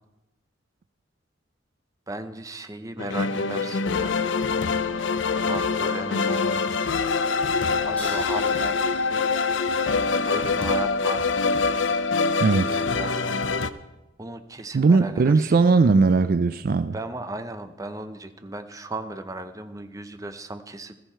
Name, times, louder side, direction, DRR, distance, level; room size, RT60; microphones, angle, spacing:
voice 1, 2.1-4.2 5.5-6.8 7.8-8.8 10.3-11.4 12.5-13.6 14.2-15.5 16.9-20.9, right 2 dB, 15° right, 9 dB, 0.7 m, -36 dB
sound 1, 3.0-13.7, left 4 dB, 70° left, 0.6 m, -24 dB
sound 2, 8.0-14.9, equal, 10° left, 5.6 m, -48 dB
voice 2, 12.4-12.8 14.7-16.9, right 4 dB, 50° right, 12 dB, 0.4 m, -19 dB
14.5 x 13.5 x 4.5 m, 1.0 s
head